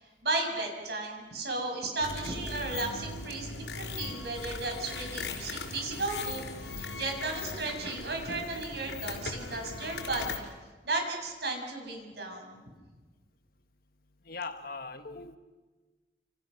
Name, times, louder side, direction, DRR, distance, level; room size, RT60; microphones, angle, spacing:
voice 1, 0.0-10.4 10.8-12.6, right 2 dB, 65° right, 3 dB, 6.9 m, -35 dB
sound 1, 2.0-10.4, left 3 dB, 75° left, 4.5 m, -39 dB
voice 2, 14.2-15.4, left 4 dB, 55° left, 8 dB, 1.6 m, -40 dB
29.0 x 28.5 x 6.4 m, 1.3 s
head